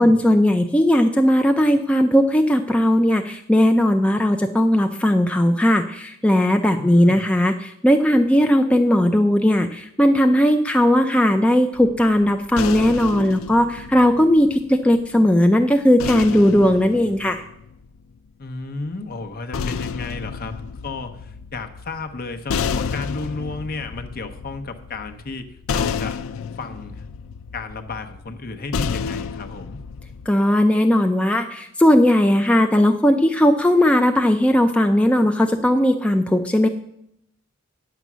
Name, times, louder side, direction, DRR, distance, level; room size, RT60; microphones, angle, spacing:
voice 1, 0.0-17.4 30.3-36.7, left 1 dB, 5° left, 4 dB, 0.4 m, -17 dB
voice 2, 6.8-7.3 18.4-26.2 26.6-27.0 27.5-29.8, left 3 dB, 45° left, 7 dB, 0.9 m, -33 dB
sound 1, 11.8-15.1 16.0-18.3 19.2-30.3, left 6 dB, 70° left, 0.4 m, -31 dB
9.6 x 6.9 x 6.1 m, 0.76 s
head